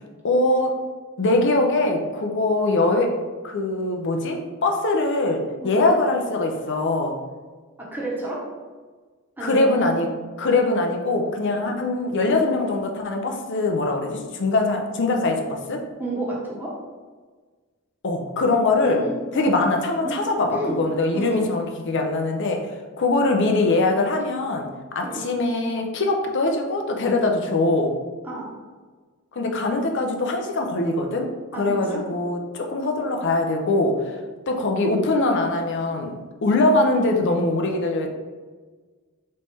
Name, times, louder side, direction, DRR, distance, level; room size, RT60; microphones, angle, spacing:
voice 1, 0.2-0.8 1.2-3.2 3.4-7.2 9.4-10.1 10.4-15.8 18.0-19.0 19.3-22.7 23.0-24.7 24.9-27.9 29.3-34.2 34.5-38.1, left 2 dB, 55° left, 3 dB, 0.6 m, -22 dB
voice 2, 7.8-8.5 9.4-9.8 11.5-11.7 16.0-16.8 18.8-19.5 20.0-20.8 21.1-21.5 25.0-25.3 28.2-28.5 31.5-32.0, right 2 dB, 10° right, -5 dB, 0.9 m, -31 dB
4.1 x 3.2 x 3.4 m, 1.4 s
head